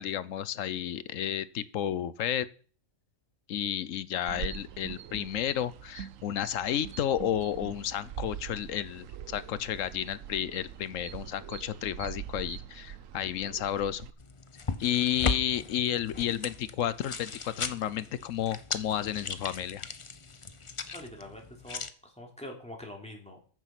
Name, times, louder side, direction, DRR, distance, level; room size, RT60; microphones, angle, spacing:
voice 1, 0.0-2.5 3.5-14.1 14.8-19.9, left 10 dB, 70° left, 17 dB, 1.1 m, -32 dB
sound 1, 4.3-14.1, right 10 dB, 70° right, 1.0 m, -43 dB
sound 2, 14.2-21.9, left 4 dB, 35° left, 0.5 m, -37 dB
voice 2, 20.9-23.4, left 1 dB, 5° left, 0 dB, 3.1 m, -45 dB
14.0 x 7.2 x 6.0 m, 0.42 s
omnidirectional pair, 1.4 m